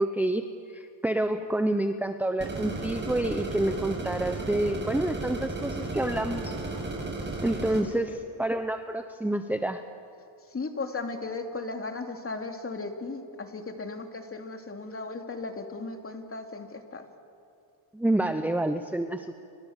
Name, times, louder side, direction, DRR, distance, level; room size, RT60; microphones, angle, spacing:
voice 1, 0.0-6.6 7.4-9.8 17.9-19.3, right 1 dB, 5° right, 7 dB, 1.0 m, -28 dB
sound 1, 2.4-7.8, right 2 dB, 20° right, 6.9 m, -34 dB
voice 2, 10.5-17.0, left 3 dB, 25° left, 4 dB, 3.0 m, -36 dB
29.0 x 26.0 x 7.5 m, 2.5 s
cardioid pair, 105°, 49 cm